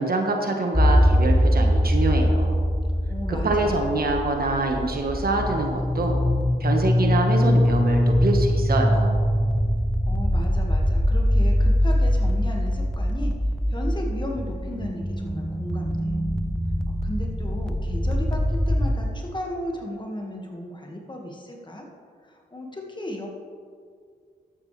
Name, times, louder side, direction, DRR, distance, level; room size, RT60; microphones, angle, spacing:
voice 1, 0.0-2.6 3.3-6.2 6.6-9.2, right 2 dB, 55° right, 2 dB, 1.4 m, -25 dB
sound 1, 0.7-19.0, equal, 5° left, 0.7 m, -22 dB
voice 2, 3.1-3.9 10.1-13.3 13.7-16.1 17.0-21.9 22.3-23.3, left 1 dB, 25° left, 0 dB, 1.8 m, -35 dB
12.0 x 8.6 x 3.3 m, 2.1 s
cardioid pair, 55°, 18 cm